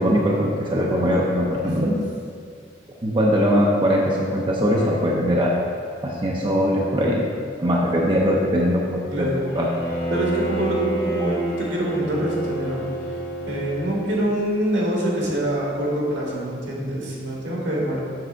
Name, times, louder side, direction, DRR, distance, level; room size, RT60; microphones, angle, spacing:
voice 1, 0.0-1.9 3.0-5.5 6.0-7.3 7.6-9.3 9.5-9.7, equal, 25° right, -3 dB, 0.6 m, -21 dB
voice 2, 1.6-2.0 9.1-9.4 10.1-12.8 13.5-18.0, right 1 dB, 75° right, -3 dB, 1.7 m, -25 dB
Bowed string instrument, 9.5-14.3, right 2 dB, 55° left, 1.8 m, -29 dB
7.6 x 3.4 x 6.3 m, 2.2 s
head